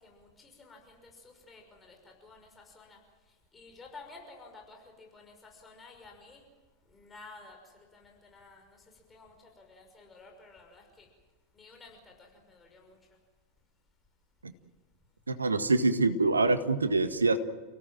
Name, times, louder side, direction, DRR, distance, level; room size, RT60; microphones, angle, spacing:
voice 1, 0.0-3.0 3.5-6.4 6.9-8.8 9.1-11.1 11.5-13.0, left 3 dB, 15° left, 2 dB, 5.8 m, -53 dB
voice 2, 15.3-17.4, right 3 dB, 75° right, 10 dB, 1.7 m, -25 dB
30.0 x 17.5 x 7.6 m, 1.3 s
figure-of-eight pair, 90°, 0 cm